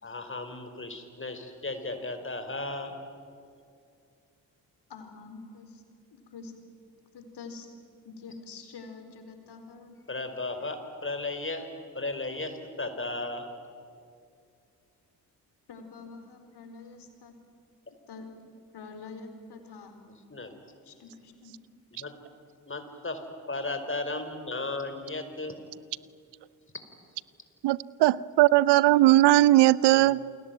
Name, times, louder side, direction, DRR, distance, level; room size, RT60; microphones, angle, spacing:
voice 1, 0.0-2.9 10.1-11.7 11.9-13.4 20.3-20.6 21.9-22.1 22.7-23.2 23.5-25.6 29.9-30.3, left 2 dB, 25° left, 7 dB, 4.8 m, -35 dB
voice 2, 4.9-5.8 6.1-6.5 7.1-7.7 8.0-10.0 15.7-17.4 18.1-18.3 18.7-20.0 20.8-21.5, left 4 dB, 60° left, 6 dB, 4.6 m, -46 dB
voice 3, 27.6-30.2, right 16 dB, 60° right, 21 dB, 0.7 m, -19 dB
28.5 x 22.0 x 9.3 m, 2.4 s
hypercardioid pair, 45°, 46 cm